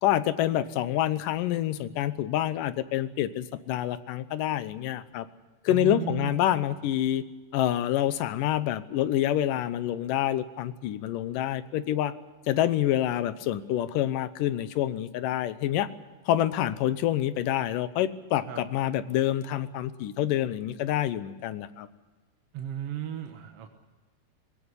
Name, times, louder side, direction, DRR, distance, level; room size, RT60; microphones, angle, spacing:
voice 1, 0.0-5.3 5.6-7.2 7.5-12.1 12.5-15.9 16.3-21.9, left 12 dB, 80° left, 13 dB, 2.5 m, -27 dB
voice 2, 5.7-6.9 18.5-18.6 22.5-23.7, right 10 dB, 55° right, 4 dB, 1.9 m, -35 dB
21.0 x 17.0 x 9.8 m, 1.2 s
omnidirectional pair, 3.8 m